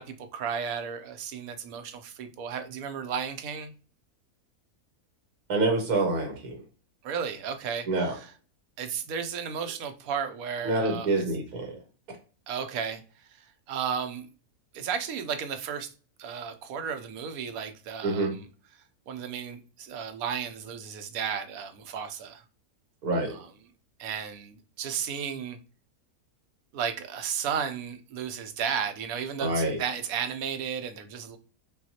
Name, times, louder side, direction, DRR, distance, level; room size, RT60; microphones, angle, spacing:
voice 1, 0.0-3.7 7.0-8.3 8.8-11.3 12.5-13.0 13.4-14.3 14.7-15.9 16.2-18.5 19.1-22.4 23.3-23.5 24.0-25.6 26.7-31.4, right 7 dB, 75° right, 1.0 m, -34 dB
voice 2, 5.5-6.6 7.9-8.1 10.6-11.7 18.0-18.3 23.0-23.3 29.4-29.8, right 2 dB, 90° right, 1.5 m, -26 dB
5.5 x 2.4 x 2.7 m
omnidirectional pair, 1.6 m